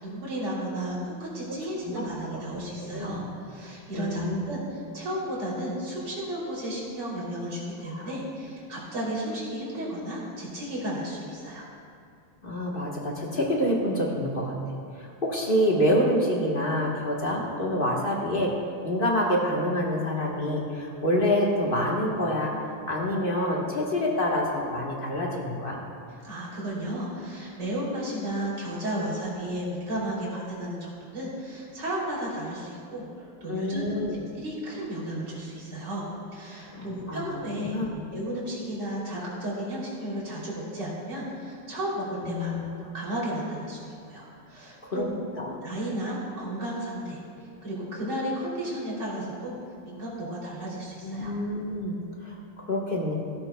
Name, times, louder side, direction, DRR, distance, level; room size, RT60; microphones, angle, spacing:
voice 1, 0.0-11.6 26.1-33.9 34.3-37.8 38.1-42.5 42.8-45.2 45.6-47.2 47.6-49.6 49.9-51.3, right 1 dB, 50° right, -6 dB, 3.6 m, -33 dB
voice 2, 2.8-3.2 4.0-4.4 7.9-8.1 12.4-14.5 15.0-18.5 18.8-22.5 22.9-25.8 33.5-34.2 36.7-38.0 42.2-42.7 44.8-45.0 45.4-45.5 51.0-53.1, left 1 dB, 35° left, -2 dB, 1.0 m, -27 dB
17.0 x 12.0 x 2.2 m, 2.5 s
omnidirectional pair, 2.4 m